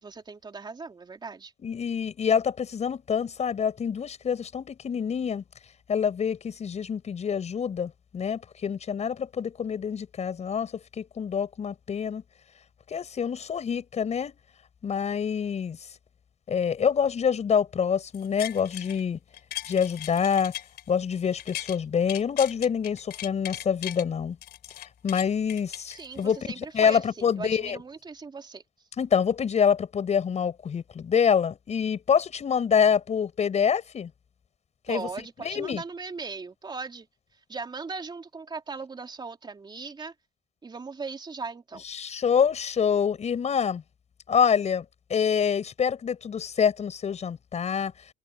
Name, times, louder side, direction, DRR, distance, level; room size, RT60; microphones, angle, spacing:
voice 1, 0.0-1.5 25.9-28.6 34.9-37.1 37.5-40.1 40.6-41.8, right 4 dB, 25° right, 3.5 m, -38 dB
voice 2, 1.6-5.4 5.9-12.2 12.9-14.4 14.8-15.8 16.5-19.2 19.7-20.5 20.9-24.4 25.0-27.8 29.0-34.1 34.9-35.1 35.4-35.8 41.8-43.8 44.3-47.9, left 7 dB, 40° left, 7.1 m, -26 dB
sound 1, 18.1-19.0 19.3-21.8 22.1-24.0 24.4-26.4 26.9-27.0, left 14 dB, 75° left, 4.2 m, -39 dB
cardioid pair, 110°, 17 cm